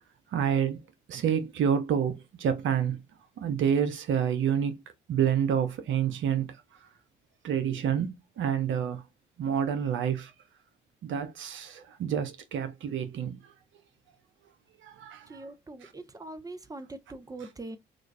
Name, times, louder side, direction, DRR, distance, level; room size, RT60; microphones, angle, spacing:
voice 1, 0.3-0.8 1.1-3.0 3.4-4.8 5.1-6.9 7.4-9.0 9.4-10.3 11.0-13.5 14.8-15.5 15.8-15.9, right 8 dB, 65° right, 0.7 m, -28 dB
voice 2, 15.3-17.8, right 2 dB, 15° right, 0.9 m, -42 dB
3.8 x 2.4 x 3.3 m
hypercardioid pair, 50°, 21 cm